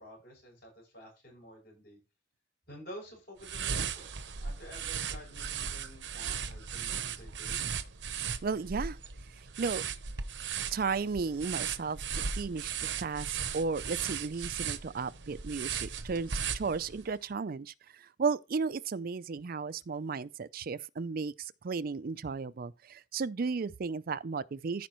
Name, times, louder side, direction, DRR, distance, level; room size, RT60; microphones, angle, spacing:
voice 1, 0.0-2.0 2.7-4.1 4.4-7.7, equal, 60° left, 6.6 m, -50 dB
sound 1, 3.4-17.1, right 7 dB, 75° right, 0.9 m, -37 dB
voice 2, 8.4-9.0 9.6-9.8 10.7-12.7 13.0-24.9, right 5 dB, 55° right, 0.5 m, -34 dB
14.5 x 5.1 x 3.1 m
head